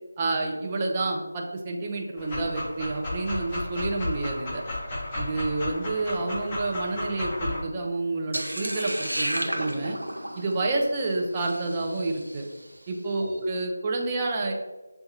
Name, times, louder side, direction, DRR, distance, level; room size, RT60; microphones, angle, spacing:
voice 1, 0.2-4.6 5.2-10.0 10.4-12.5 12.9-14.5, right 2 dB, 20° right, 0 dB, 0.4 m, -29 dB
Dog, 2.2-7.6, left 2 dB, 15° left, 0.7 m, -33 dB
Road flare extinquished in water, 8.3-12.6, right 1 dB, 80° right, 0.7 m, -33 dB
6.3 x 2.2 x 2.8 m, 1.2 s
figure-of-eight pair, 160°, 0 cm